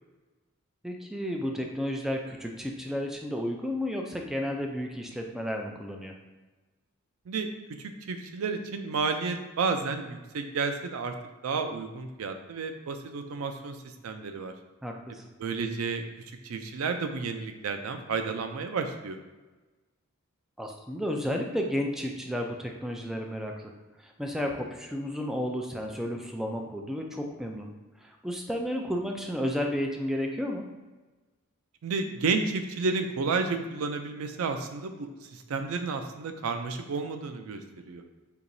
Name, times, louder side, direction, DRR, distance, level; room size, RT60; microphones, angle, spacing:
voice 1, 0.8-6.1 14.8-15.2 20.6-23.5 24.0-27.7 28.0-30.6, equal, ahead, 1 dB, 0.3 m, -32 dB
voice 2, 7.8-11.1 11.4-13.8 14.0-14.5 15.4-16.0 16.4-19.2 31.8-37.6 37.9-38.0, right 4 dB, 90° right, 6 dB, 0.4 m, -31 dB
4.5 x 2.8 x 2.6 m, 1.2 s
head